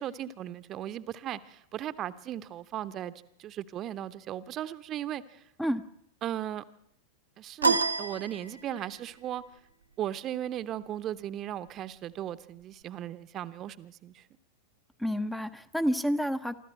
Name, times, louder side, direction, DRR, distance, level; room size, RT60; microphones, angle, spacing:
voice 1, 0.0-3.1 3.4-5.4 6.2-6.6 7.4-9.4 10.0-14.2, right 11 dB, 30° right, 13 dB, 0.8 m, -37 dB
sound 1, 7.6-9.0, right 4 dB, 80° right, 1.0 m, -28 dB
voice 2, 15.0-16.6, equal, 5° left, 11 dB, 0.7 m, -29 dB
25.0 x 13.5 x 7.7 m, 0.74 s
figure-of-eight pair, 90°, 0 cm